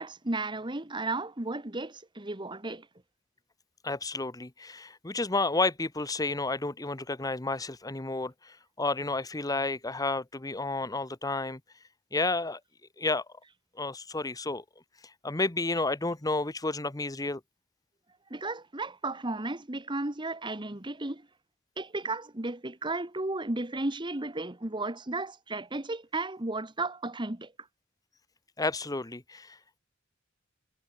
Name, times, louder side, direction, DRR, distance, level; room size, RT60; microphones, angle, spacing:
voice 1, 0.0-2.9 18.3-21.3 21.8-27.5, right 2 dB, 25° right, 1.5 m, -34 dB
voice 2, 3.8-11.6 12.1-12.6 13.0-13.2 13.8-14.6 15.2-17.4 28.6-29.8, left 3 dB, 20° left, 1.1 m, -31 dB
head